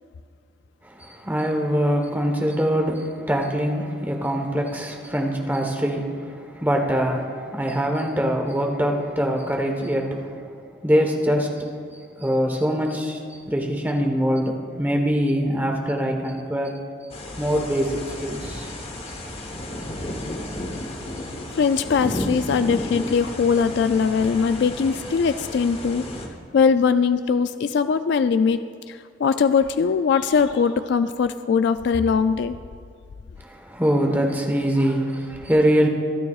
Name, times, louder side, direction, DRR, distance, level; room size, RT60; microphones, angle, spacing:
voice 1, 0.8-10.5 10.8-11.6 12.2-13.2 13.5-16.7 17.4-18.7 33.4-35.9, equal, 10° right, 2 dB, 1.1 m, -23 dB
sound 1, 17.1-26.3, left 1 dB, 30° left, 1.0 m, -33 dB
voice 2, 21.6-26.0 26.5-28.6 28.9-32.6, left 5 dB, 60° left, 11 dB, 0.3 m, -21 dB
23.0 x 9.3 x 2.4 m, 2.2 s
head